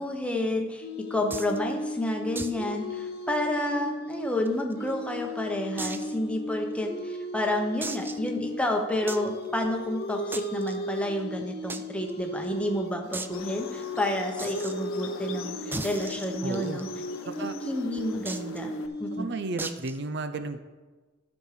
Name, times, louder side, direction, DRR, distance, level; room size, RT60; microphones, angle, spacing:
voice 1, 0.0-16.9 17.2-19.3, left 1 dB, 5° left, 3 dB, 1.0 m, -30 dB
sound 1, 0.8-8.7 9.0-19.2, left 1 dB, 50° left, 0.8 m, -36 dB
sound 2, 1.3-1.6 2.4-2.6 2.9-3.0 3.4-3.5 4.1-4.9 5.8-6.1 6.7-6.8 7.8-8.3 9.1-9.3 10.3-10.8 11.7-11.8 12.1-12.2 12.4-12.5 13.1-13.4 14.4-14.7 15.7-16.8 18.3-18.6 19.6-20.0, right 3 dB, 10° right, 0.3 m, -36 dB
sound 3, 13.3-18.9, left 4 dB, 90° left, 0.7 m, -42 dB
voice 2, 16.4-16.8 17.2-17.6 19.1-20.6, right 3 dB, 60° right, 10 dB, 0.6 m, -33 dB
12.0 x 6.4 x 4.9 m, 1.3 s
head